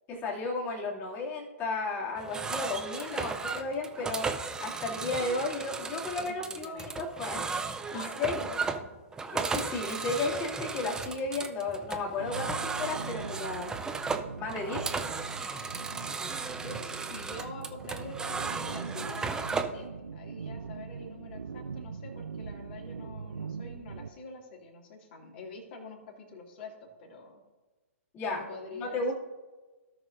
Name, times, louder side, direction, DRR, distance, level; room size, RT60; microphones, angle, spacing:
voice 1, 0.1-4.3 4.6-7.4 7.9-8.4 9.3-13.7 14.4-14.9 28.1-28.4 28.7-29.1, left 3 dB, 25° left, -3 dB, 2.5 m, -33 dB
sound 1, 2.2-19.8, right 4 dB, 10° right, 0.5 m, -35 dB
voice 2, 3.0-3.3 6.3-7.0 7.9-8.9 16.6-27.4 28.3-29.0, left 3 dB, 45° left, 0 dB, 2.4 m, -46 dB
sound 2, 12.2-24.1, right 5 dB, 80° right, 0.4 m, -42 dB
17.0 x 5.9 x 2.6 m, 1.2 s
figure-of-eight pair, 120°, 8 cm